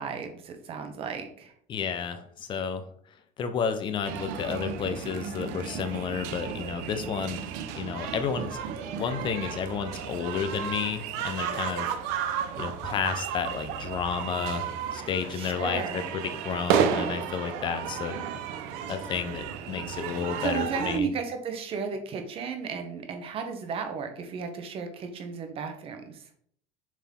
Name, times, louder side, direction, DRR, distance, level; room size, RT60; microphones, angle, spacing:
voice 1, 0.0-1.5 15.3-16.1 20.4-26.2, right 5 dB, 35° right, 6 dB, 1.0 m, -34 dB
voice 2, 1.7-2.8 3.4-7.4 7.8-8.6 9.0-12.0 12.6-18.2 18.9-21.1, left 7 dB, 30° left, 9 dB, 0.7 m, -31 dB
sound 1, 4.0-21.0, right 8 dB, 85° right, 0.7 m, -33 dB
7.2 x 4.1 x 3.7 m, 0.63 s
cardioid pair, 175°, 17 cm